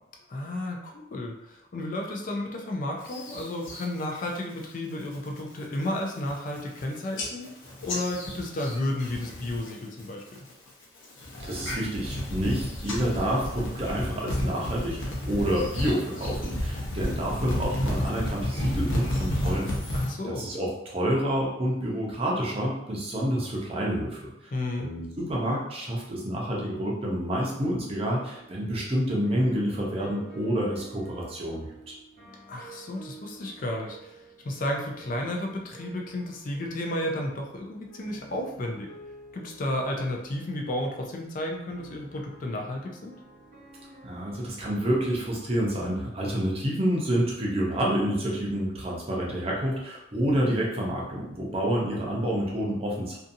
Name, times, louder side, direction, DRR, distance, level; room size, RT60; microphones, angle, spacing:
voice 1, 0.3-7.6 7.8-10.5 19.9-20.5 24.5-24.9 32.5-38.9 39.3-43.2, left 1 dB, 45° left, 1 dB, 0.4 m, -32 dB
sound 1, 3.0-3.8 4.2-4.6 5.0-5.4 5.8-5.9 6.1-6.8 7.2-9.7 10.0-10.5 11.0-20.1, left 1 dB, 90° left, 0.8 m, -31 dB
voice 2, 11.4-20.0 20.2-24.5 24.8-31.9 44.0-53.2, equal, 30° right, -3 dB, 0.6 m, -28 dB
sound 2, 28.1-45.7, right 3 dB, 70° right, 0.8 m, -50 dB
2.6 x 2.4 x 2.6 m, 0.84 s
head